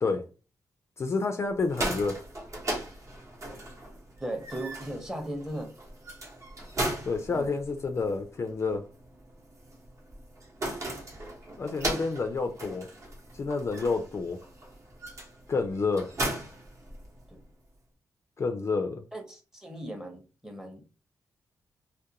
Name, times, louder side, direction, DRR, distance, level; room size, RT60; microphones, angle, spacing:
voice 1, 1.0-2.2 7.1-8.9 11.6-12.9 13.3-14.4 15.5-16.1 18.4-19.0, left 4 dB, 40° left, 0.3 m, -29 dB
sound 1, 1.5-17.4, right 1 dB, 45° right, 0.8 m, -38 dB
voice 2, 4.2-5.7 7.3-7.5 17.3-17.4 19.1-20.8, right 1 dB, 5° right, 0.7 m, -37 dB
2.4 x 2.1 x 2.8 m
cardioid pair, 85°, 7 cm